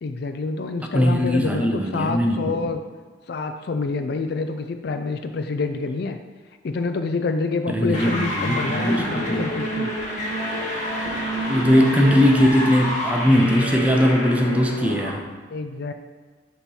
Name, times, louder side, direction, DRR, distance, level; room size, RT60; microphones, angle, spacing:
voice 1, 0.0-2.8 3.3-6.2 6.6-9.9 15.5-15.9, left 3 dB, 55° left, 8 dB, 0.4 m, -27 dB
voice 2, 0.9-2.5 7.7-9.5 11.5-15.2, equal, 5° right, 1 dB, 0.5 m, -20 dB
sound 1, 7.9-15.1, equal, 40° left, 1.1 m, -28 dB
7.0 x 3.0 x 5.4 m, 1.4 s
head